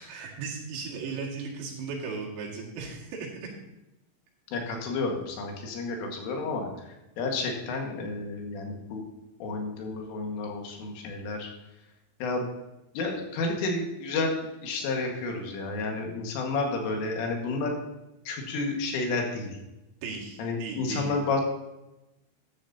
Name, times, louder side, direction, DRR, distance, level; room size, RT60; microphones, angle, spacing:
voice 1, 0.0-3.5 20.0-21.2, right 4 dB, 80° right, -2 dB, 4.7 m, -36 dB
voice 2, 4.5-6.7 7.2-9.1 9.4-11.5 12.2-12.5 13.0-17.8 18.3-19.5 20.4-21.4, left 3 dB, 75° left, 1 dB, 4.2 m, -31 dB
14.0 x 11.5 x 2.8 m, 0.96 s
omnidirectional pair, 5.9 m